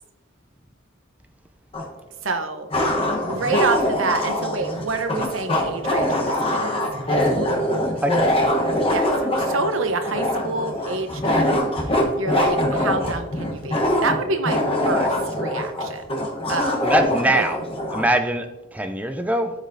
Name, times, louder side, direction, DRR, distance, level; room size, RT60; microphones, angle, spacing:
sound 1, 1.7-1.8 2.7-18.1, left 1 dB, 30° left, 1.0 m, -23 dB
voice 1, 2.2-2.7 3.3-7.6 8.6-11.5 12.2-16.0 16.5-16.8 17.3-17.5, right 3 dB, 80° right, 7 dB, 0.8 m, -27 dB
voice 2, 8.0-8.3 16.8-17.6 17.9-18.5 18.7-19.5, right 1 dB, 10° right, 7 dB, 0.4 m, -22 dB
12.5 x 5.1 x 2.6 m, 1.1 s
head